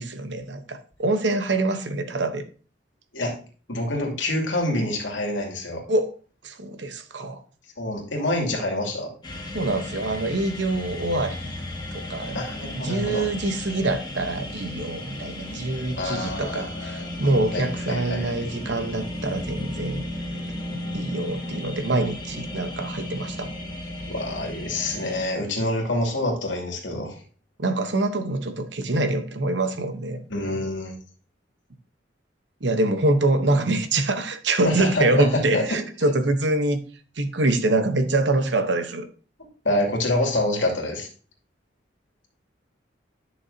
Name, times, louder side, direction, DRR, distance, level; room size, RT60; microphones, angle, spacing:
voice 1, 0.0-2.4 5.9-6.1 6.4-7.4 9.5-11.6 11.9-20.0 20.9-23.5 27.6-30.2 32.6-36.8 37.2-39.1, right 2 dB, 65° right, 1.0 m, -25 dB
voice 2, 3.7-5.8 7.8-9.1 12.3-13.2 15.9-17.1 17.5-18.3 24.1-27.2 30.3-31.0 34.6-35.8 39.6-41.1, left 1 dB, 85° left, 2.6 m, -26 dB
sound 1, 9.2-25.2, left 1 dB, 25° left, 2.0 m, -34 dB
11.0 x 6.4 x 2.7 m
head